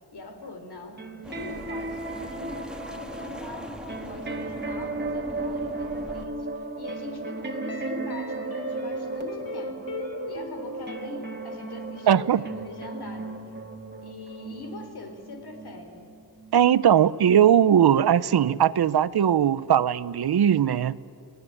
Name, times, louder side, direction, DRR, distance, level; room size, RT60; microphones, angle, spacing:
voice 1, 0.1-9.9 10.3-13.5 14.0-16.1, left 3 dB, 75° left, 5 dB, 3.6 m, -42 dB
sound 1, 0.9-17.6 18.3-18.4, right 3 dB, 25° right, 1.8 m, -35 dB
sound 2, 1.2-6.3, equal, ahead, 1.4 m, -41 dB
sound 3, 5.8-11.0, left 4 dB, 55° left, 3.1 m, -40 dB
voice 2, 12.1-12.4 16.5-21.0, right 9 dB, 75° right, 17 dB, 0.7 m, -19 dB
29.0 x 18.0 x 9.8 m, 2.6 s
wide cardioid pair, 125°, 39 cm